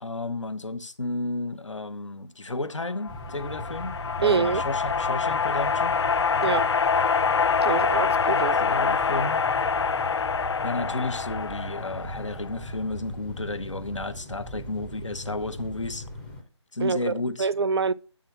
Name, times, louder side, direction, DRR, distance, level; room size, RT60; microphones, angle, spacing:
voice 1, 0.0-6.0 8.3-9.4 10.6-16.0 16.7-17.5, left 2 dB, 85° left, 1.0 m, -32 dB
sound 1, 3.0-12.6, left 5 dB, 65° left, 0.4 m, -25 dB
sound 2, 3.1-16.4, right 1 dB, 5° left, 0.5 m, -39 dB
voice 2, 4.2-4.6 6.4-6.7 7.6-8.6 16.8-17.1 17.4-17.9, right 5 dB, 60° right, 0.5 m, -25 dB
8.6 x 3.7 x 5.8 m
figure-of-eight pair, 160°, 15 cm